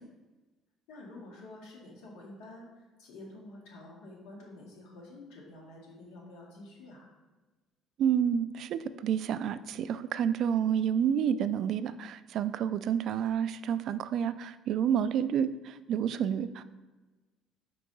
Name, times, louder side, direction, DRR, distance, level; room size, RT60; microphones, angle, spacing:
voice 1, 0.9-7.1, left 2 dB, 85° left, -2 dB, 2.0 m, -49 dB
voice 2, 8.0-16.6, right 8 dB, 60° right, 14 dB, 0.3 m, -29 dB
4.8 x 4.5 x 5.2 m, 1.2 s
cardioid pair, 105°, 0 cm